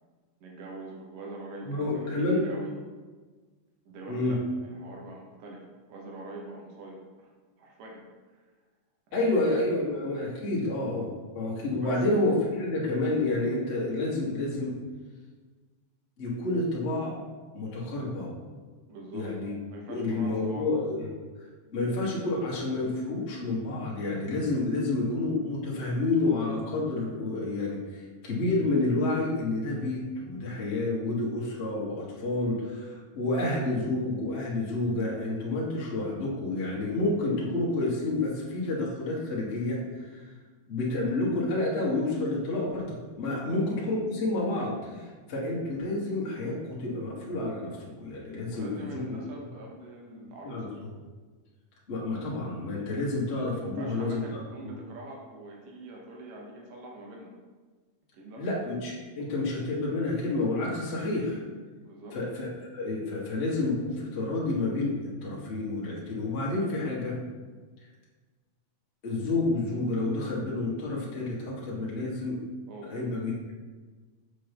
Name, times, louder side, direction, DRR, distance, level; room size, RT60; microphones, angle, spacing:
voice 1, 0.4-2.7 3.9-7.3 7.6-8.0 8.3-8.4 9.1-9.4 11.8-12.0 18.9-19.3 19.7-20.7 43.3-43.5 48.3-50.7 53.6-57.3 58.1-58.4 61.8-62.2 72.7-72.9, right 1 dB, 80° right, -1 dB, 2.8 m, -44 dB
voice 2, 1.6-2.4 4.1-4.4 9.1-14.7 16.2-17.1 17.5-18.3 19.1-19.5 19.9-21.1 21.4-40.3 40.7-42.8 43.2-49.1 50.4-50.7 51.9-54.2 54.6-54.7 58.4-61.4 62.1-67.1 69.0-72.4 72.8-73.5, left 2 dB, 40° left, -5 dB, 0.8 m, -29 dB
6.9 x 5.3 x 3.5 m, 1.4 s
omnidirectional pair, 3.8 m